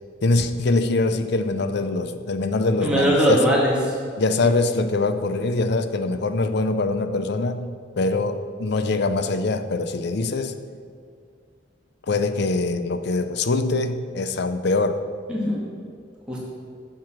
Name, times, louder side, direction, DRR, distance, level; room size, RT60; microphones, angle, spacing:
voice 1, 0.2-3.5 4.2-7.7 8.0-10.5 12.1-15.0, left 3 dB, 60° left, 10 dB, 0.5 m, -23 dB
voice 2, 2.8-3.9 15.3-15.6 16.3-16.4, equal, 5° right, -6 dB, 2.1 m, -20 dB
7.6 x 6.8 x 5.9 m, 2.2 s
head